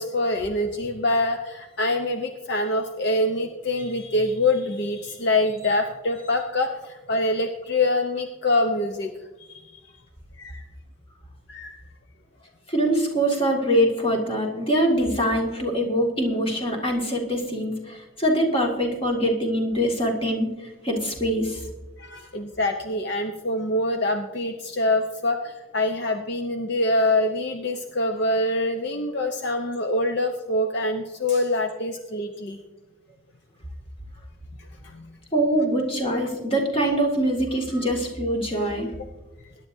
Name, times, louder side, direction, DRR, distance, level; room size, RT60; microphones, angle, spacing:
voice 1, 0.0-9.1 9.4-9.8 10.4-10.7 11.5-11.9 22.0-32.6 34.6-35.2 37.7-37.8, left 2 dB, 55° left, 5 dB, 0.7 m, -25 dB
voice 2, 12.7-20.5 20.8-21.6 35.3-38.9, equal, 25° left, 0 dB, 2.1 m, -23 dB
21.0 x 10.5 x 2.7 m, 1.1 s
head